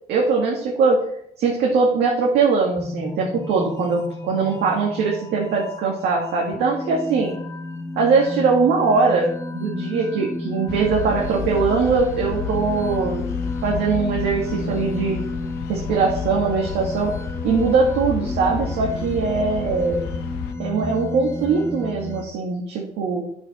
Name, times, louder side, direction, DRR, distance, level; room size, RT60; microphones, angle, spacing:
voice 1, 0.1-1.0 1.4-7.3 8.0-13.2 13.6-15.2 15.7-17.1 17.4-20.0 20.6-23.2, right 4 dB, 75° right, -1 dB, 1.8 m, -21 dB
sound 1, 2.8-22.2, left 2 dB, 15° left, 0.9 m, -32 dB
sound 2, 10.7-20.5, left 8 dB, 90° left, 0.7 m, -32 dB
9.0 x 7.1 x 4.1 m, 0.72 s
cardioid pair, 110°, 17 cm